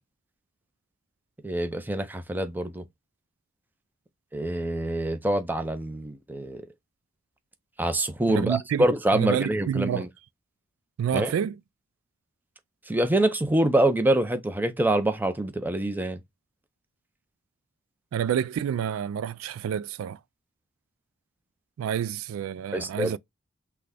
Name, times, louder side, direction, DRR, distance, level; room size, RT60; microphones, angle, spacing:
voice 1, 1.4-2.8 4.3-6.6 7.8-10.1 11.1-11.3 12.9-16.2 22.7-23.2, right 1 dB, 10° right, 0.6 m, -25 dB
voice 2, 8.3-8.9 9.1-10.0 11.0-11.5 18.1-20.2 21.8-23.2, right 9 dB, 85° right, 0.3 m, -28 dB
5.9 x 2.2 x 3.3 m
head